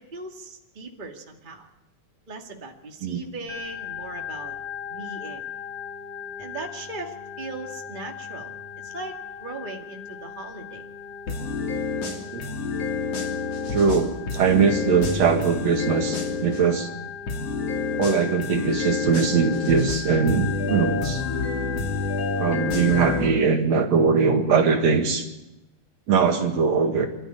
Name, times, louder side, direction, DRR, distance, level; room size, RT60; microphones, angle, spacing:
voice 1, 0.0-1.7 2.3-4.5 4.9-5.4 6.4-9.1 9.4-10.9, right 3 dB, 20° right, 2 dB, 1.9 m, -38 dB
Organ, 3.5-23.2, left 8 dB, 80° left, 3.6 m, -37 dB
sound 1, 11.3-16.6 17.3-23.3, left 4 dB, 55° left, 3.6 m, -28 dB
voice 2, 13.7-16.9 18.0-21.2 22.4-25.3 26.1-27.1, right 5 dB, 60° right, 4 dB, 2.9 m, -21 dB
27.0 x 13.5 x 10.0 m, 0.99 s
omnidirectional pair, 3.5 m